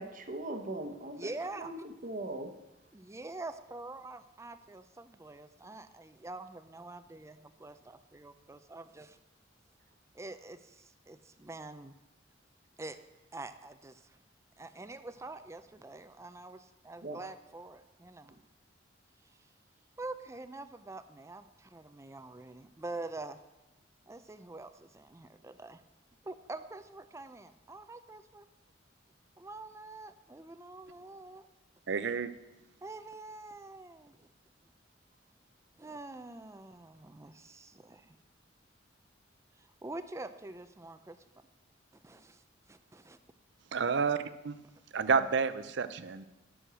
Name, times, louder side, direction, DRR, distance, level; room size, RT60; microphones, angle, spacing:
voice 1, 0.0-2.5 17.0-17.2, right 1 dB, 45° right, 7 dB, 1.0 m, -40 dB
voice 2, 1.2-1.7 2.9-9.2 10.1-11.9 12.8-13.0 13.3-14.1 14.6-18.3 20.0-23.4 24.1-25.8 26.2-28.5 29.4-31.4 32.8-34.3 35.8-38.2 39.6-41.2 42.0-42.4 42.7-43.2, right 2 dB, 15° right, 11 dB, 0.4 m, -45 dB
voice 3, 31.9-32.3 43.7-44.6 44.9-46.3, right 5 dB, 65° right, 13 dB, 0.6 m, -30 dB
11.0 x 6.3 x 6.2 m, 1.1 s
head